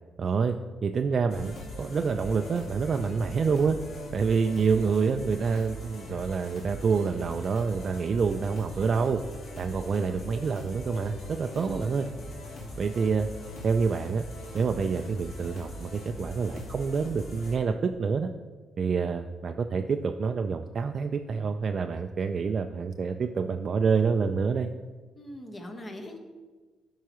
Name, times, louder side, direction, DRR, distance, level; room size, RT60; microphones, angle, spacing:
voice 1, 0.2-0.6 0.8-3.8 4.1-9.2 9.6-12.1 12.8-13.3 13.6-14.2 14.5-18.3 18.8-24.7, right 5 dB, 45° right, 5 dB, 0.3 m, -27 dB
sound 1, 1.3-17.6, equal, 75° left, 1.8 m, -41 dB
voice 2, 11.5-11.9 25.1-26.2, left 1 dB, 25° left, 3 dB, 1.3 m, -41 dB
12.5 x 4.6 x 3.0 m, 1.3 s
cardioid pair, 90°, 0 cm